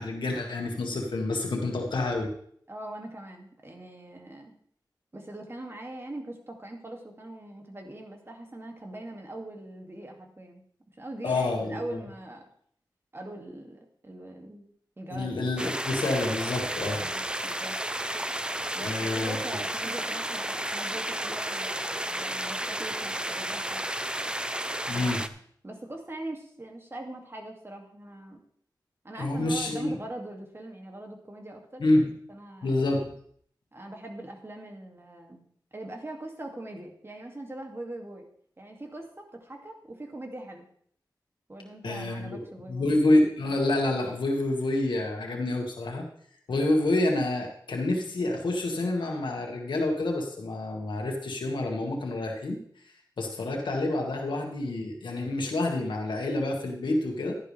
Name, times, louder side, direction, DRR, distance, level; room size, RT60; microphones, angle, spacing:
voice 1, 0.0-2.3 11.2-12.0 15.1-17.0 18.8-19.4 24.9-25.2 29.2-29.9 31.8-32.1 32.6-33.1 41.8-42.4 42.7-46.1 46.5-52.6 53.2-57.4, left 2 dB, 90° left, 1 dB, 1.8 m, -28 dB
voice 2, 2.7-4.5 5.1-10.6 11.0-12.4 13.1-14.7 15.0-15.5 16.9-17.8 18.7-23.8 24.9-25.3 25.6-28.4 29.0-32.0 32.3-33.0 33.7-35.4 35.7-38.2 38.6-40.7 41.5-42.9, right 1 dB, 30° right, 2 dB, 2.4 m, -41 dB
sound 1, 15.6-25.3, right 1 dB, 10° right, 0.6 m, -32 dB
11.5 x 10.5 x 3.4 m, 0.63 s
cardioid pair, 55°, 8 cm